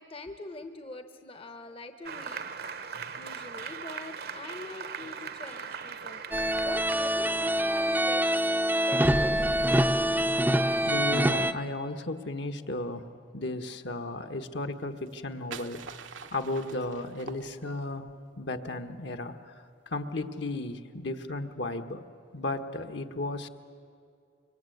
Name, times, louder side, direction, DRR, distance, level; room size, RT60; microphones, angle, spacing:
voice 1, 0.0-2.5 2.8-6.2 6.6-9.9 15.5-15.6, left 2 dB, 30° left, 7 dB, 0.9 m, -44 dB
Applause, 2.0-9.2, right 6 dB, 50° right, 0.9 m, -41 dB
sound 1, 6.3-11.5, right 1 dB, 10° right, 0.6 m, -25 dB
voice 2, 10.8-13.1 13.3-18.1 18.4-22.0 22.3-23.5, left 2 dB, 60° left, 7 dB, 1.3 m, -34 dB
sound 2, 15.0-18.0, right 5 dB, 75° right, 1.0 m, -45 dB
25.0 x 23.5 x 9.3 m, 2.5 s
head